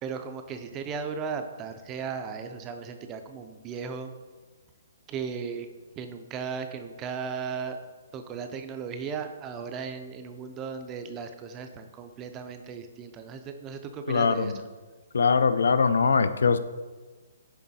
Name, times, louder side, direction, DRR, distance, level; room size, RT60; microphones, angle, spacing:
voice 1, 0.0-4.1 5.1-5.7 6.0-7.8 8.1-14.7, right 6 dB, 15° right, 7 dB, 0.4 m, -36 dB
voice 2, 14.1-14.6 15.1-16.6, left 5 dB, 85° left, 12 dB, 0.4 m, -22 dB
6.2 x 3.7 x 4.1 m, 1.3 s
hypercardioid pair, 165°, 0 cm